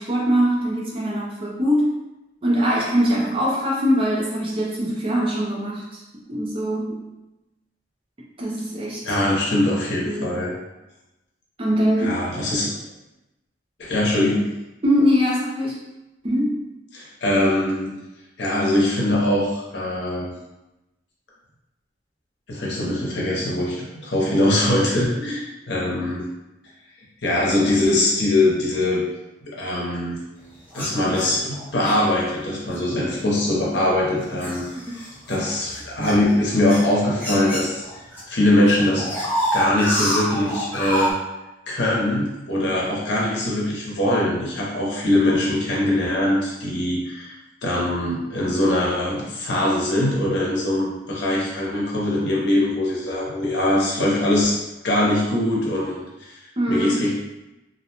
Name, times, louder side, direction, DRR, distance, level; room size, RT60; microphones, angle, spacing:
voice 1, 0.0-1.9 2.4-6.0 6.3-7.1 8.4-9.0 10.0-10.5 11.6-12.2 14.8-15.8 16.2-16.6 25.2-25.3 56.6-57.0, equal, 30° right, -3 dB, 0.5 m, -22 dB
voice 2, 9.0-10.5 12.0-12.7 13.8-14.5 16.9-18.0 18.4-20.3 22.5-26.2 27.2-29.1 29.4-30.2 30.7-34.6 34.9-38.0 38.3-41.2 41.7-47.4 47.6-54.6 54.8-56.4 56.7-57.1, left 1 dB, 70° left, -4 dB, 0.7 m, -22 dB
sound 1, 30.7-32.0 32.7-33.0 33.6-38.2 38.5-41.1, equal, 10° left, 0.6 m, -28 dB
2.5 x 2.1 x 2.8 m, 0.98 s
head